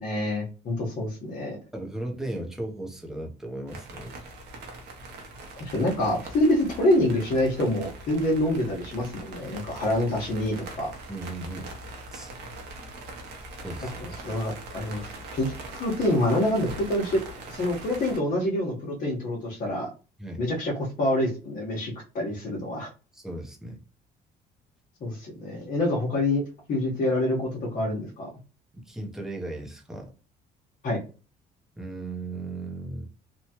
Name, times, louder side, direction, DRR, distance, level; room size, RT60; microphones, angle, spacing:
voice 1, 0.0-1.6 5.6-10.9 14.2-17.2 17.5-19.9 20.4-20.7 21.0-22.9 25.0-26.4 26.7-28.3 30.8-31.0, left 1 dB, 55° left, -4 dB, 1.0 m, -26 dB
voice 2, 1.7-4.2 11.1-11.7 12.1-12.3 13.6-13.9 20.2-20.4 23.1-23.8 28.9-30.1 31.8-33.1, right 2 dB, 5° right, 1 dB, 0.7 m, -36 dB
sound 1, 3.7-18.2, right 2 dB, 80° right, 0.9 m, -41 dB
3.0 x 2.3 x 2.8 m, 0.34 s
cardioid pair, 110°, 17 cm